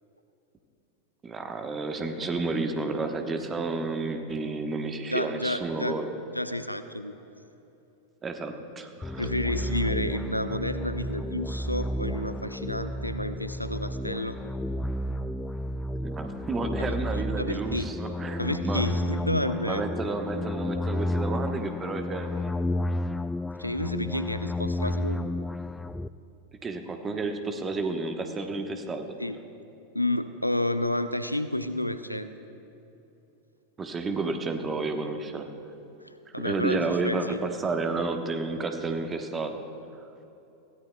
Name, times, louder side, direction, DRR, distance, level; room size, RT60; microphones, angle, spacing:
voice 1, 1.2-6.1 8.2-9.3 16.0-18.8 19.6-22.5 26.6-29.1 33.8-35.5 36.4-39.6, right 3 dB, 20° right, 6 dB, 1.1 m, -31 dB
voice 2, 5.1-6.0 6.3-7.1 9.2-14.4 16.8-17.9 18.4-19.8 23.6-25.3 29.2-29.4 29.9-32.3 36.0-37.4, left 1 dB, 90° left, 11 dB, 0.5 m, -30 dB
sound 1, 9.0-26.1, left 1 dB, 10° left, 0.3 m, -32 dB
21.5 x 16.0 x 2.3 m, 2.8 s
figure-of-eight pair, 90°, 0 cm